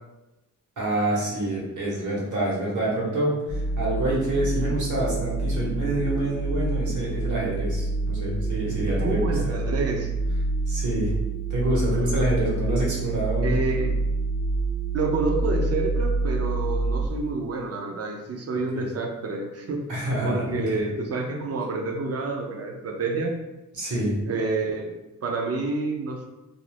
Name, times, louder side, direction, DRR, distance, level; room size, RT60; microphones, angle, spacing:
voice 1, 0.8-9.7 10.7-11.1 11.5-13.6 18.7-18.8 19.9-20.8 23.7-24.2, right 1 dB, 70° right, -5 dB, 1.2 m, -27 dB
sound 1, 3.5-17.1, right 3 dB, 50° left, 0.8 m, -27 dB
voice 2, 9.0-10.1 13.4-13.9 14.9-19.8 20.2-23.3 24.3-26.3, right 3 dB, 50° right, 2 dB, 0.6 m, -28 dB
2.6 x 2.0 x 3.2 m, 1.0 s
cardioid pair, 70°, 31 cm